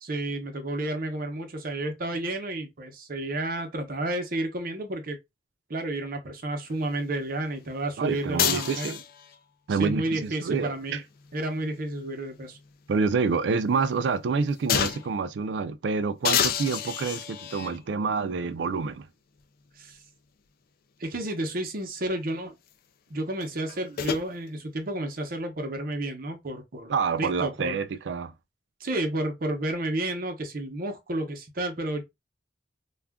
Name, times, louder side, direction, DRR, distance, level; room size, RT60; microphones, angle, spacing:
voice 1, 0.0-5.2 5.7-8.9 9.7-11.0 11.3-12.6 19.8-20.0 21.0-22.5 23.1-27.8 28.8-32.0, right 1 dB, 55° right, 0.7 m, -31 dB
voice 2, 8.0-9.0 9.7-11.0 12.9-19.1 26.9-28.3, right 5 dB, 80° right, 0.4 m, -27 dB
sound 1, 8.4-9.4 11.1-12.7 13.1-13.2 14.7-15.2 16.2-17.8 18.7-18.8 23.4-24.3, left 8 dB, 55° left, 0.3 m, -29 dB
2.4 x 2.2 x 3.5 m
head